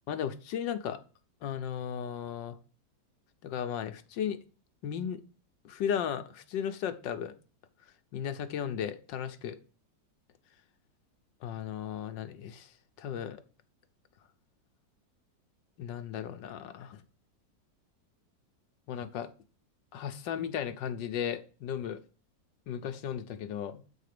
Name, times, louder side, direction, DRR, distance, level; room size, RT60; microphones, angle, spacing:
voice 1, 0.1-1.0 1.4-2.6 3.4-4.4 4.8-5.2 5.6-7.3 8.1-9.6 11.4-13.4 15.8-17.0 18.9-19.3 19.9-22.0 22.7-23.8, left 8 dB, 75° left, 1.5 m, -35 dB
8.1 x 4.9 x 6.6 m
omnidirectional pair, 2.0 m